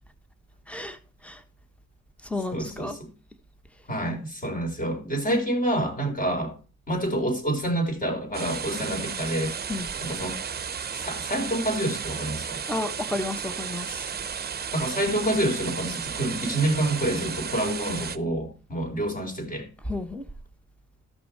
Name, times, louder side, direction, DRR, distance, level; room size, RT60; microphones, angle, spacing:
voice 1, 0.7-1.0 1.2-1.4 2.2-3.0 9.7-9.9 12.7-14.1 19.8-20.3, left 2 dB, 5° left, 1.2 m, -32 dB
voice 2, 2.5-3.1 3.9-6.5 6.9-9.5 10.0-10.4 10.9-12.6 14.7-19.7, right 1 dB, 25° left, 4.2 m, -27 dB
sound 1, 8.3-18.2, right 7 dB, 30° right, 0.8 m, -33 dB
13.5 x 6.1 x 4.6 m
cardioid pair, 90°, 30 cm